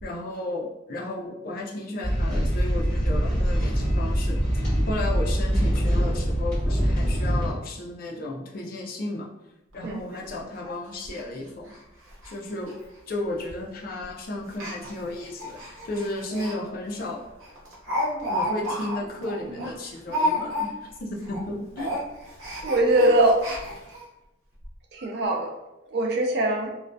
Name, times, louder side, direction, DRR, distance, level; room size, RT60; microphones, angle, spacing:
voice 1, 0.0-9.3 9.7-11.7 12.2-12.7 13.1-17.2 18.3-20.7 21.0-21.9, left 1 dB, 45° left, -2 dB, 0.4 m, -33 dB
sound 1, 2.0-7.5, equal, 5° left, 1.3 m, -23 dB
Speech, 9.7-9.8 10.2-10.3 10.6-10.7 11.1-11.2 11.7-11.8 12.1-12.3 12.6-12.7 13.5-13.7 14.5-16.6 16.9-17.0 17.4-21.0 21.2-21.4 21.7-24.0 24.6-24.7 25.0-25.1, left 1 dB, 85° right, 0.8 m, -31 dB
voice 2, 9.8-10.2 22.6-23.6 24.9-25.5 25.9-26.7, right 1 dB, 55° right, 1 dB, 0.4 m, -22 dB
sound 2, 16.3-17.5, left 8 dB, 30° right, 0.9 m, -44 dB
2.3 x 2.1 x 2.5 m, 0.93 s
head